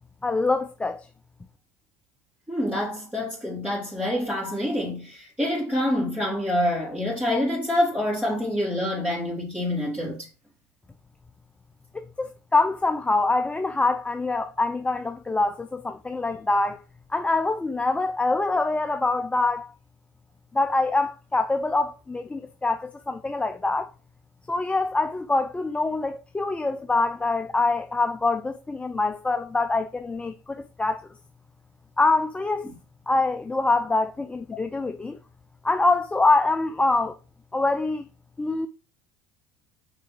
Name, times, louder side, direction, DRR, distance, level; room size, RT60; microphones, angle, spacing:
voice 1, 0.2-1.1 11.9-16.8 17.1-19.7 20.5-23.9 24.5-31.1 32.0-32.7 33.1-35.2 35.6-37.2 37.5-38.1 38.4-38.7, left 3 dB, 15° left, 0.5 m, -25 dB
voice 2, 2.5-10.3, left 1 dB, 10° right, 3.9 m, -26 dB
6.7 x 4.8 x 4.6 m
supercardioid pair, 100°, 9 cm